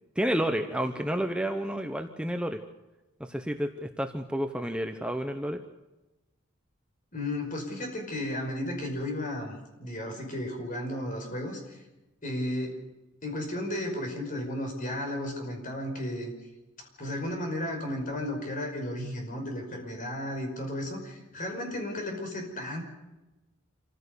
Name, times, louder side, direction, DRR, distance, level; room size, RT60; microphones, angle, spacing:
voice 1, 0.2-2.6 3.2-5.6, equal, 5° right, 6 dB, 0.9 m, -30 dB
voice 2, 7.1-11.8 12.2-12.8 13.2-16.3 17.0-22.8, left 1 dB, 40° left, 3 dB, 5.4 m, -34 dB
27.0 x 15.5 x 6.9 m, 1.1 s
head